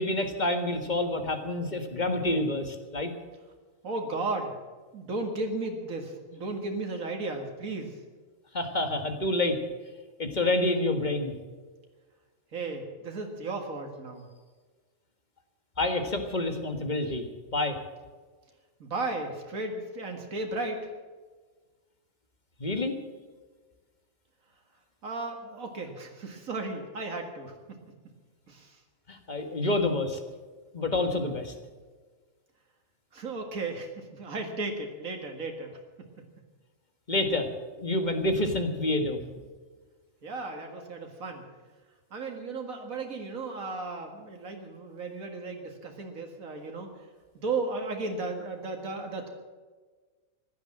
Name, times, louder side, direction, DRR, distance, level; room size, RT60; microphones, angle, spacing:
voice 1, 0.0-3.1 8.5-9.6 10.2-11.3 15.8-17.2 17.5-17.8 22.6-23.0 29.1-30.2 30.7-31.5 37.1-37.5 37.8-39.2, left 2 dB, 35° left, 6 dB, 1.8 m, -28 dB
voice 2, 3.8-4.5 4.9-7.9 12.5-14.3 18.8-20.9 25.0-27.5 28.5-28.8 33.1-35.8 40.2-41.4 42.1-46.9 47.3-49.3, right 3 dB, 85° right, 3 dB, 2.3 m, -35 dB
15.5 x 12.0 x 7.6 m, 1.4 s
omnidirectional pair, 1.4 m